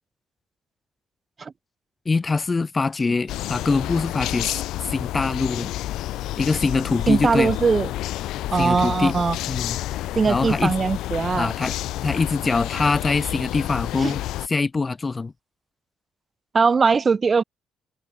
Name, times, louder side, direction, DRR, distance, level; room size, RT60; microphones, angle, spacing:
voice 1, 2.1-5.7 6.4-7.5 8.6-9.2 9.5-9.8 10.3-10.7 11.4-11.7 12.0-14.2 14.5-15.3, left 4 dB, 25° left, 0.7 m, -23 dB
sound 1, 3.3-14.5, left 15 dB, 80° left, 1.8 m, -30 dB
voice 2, 7.1-7.9 8.5-9.4 10.1-11.5 14.0-14.1 16.5-17.4, right 5 dB, 35° right, 1.3 m, -20 dB
cardioid pair, 100°, 0 cm